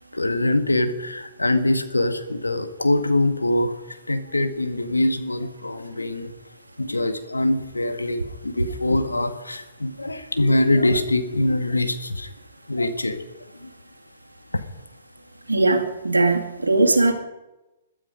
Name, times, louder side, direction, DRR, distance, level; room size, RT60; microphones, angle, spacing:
voice 1, 0.1-3.7 4.1-6.3 6.8-12.3 12.7-13.2 13.6-13.7, left 1 dB, 90° left, 8 dB, 1.7 m, -23 dB
voice 2, 15.5-17.1, right 2 dB, 90° right, 4 dB, 2.3 m, -19 dB
21.5 x 12.5 x 5.2 m, 1.0 s
figure-of-eight pair, 120°, 0 cm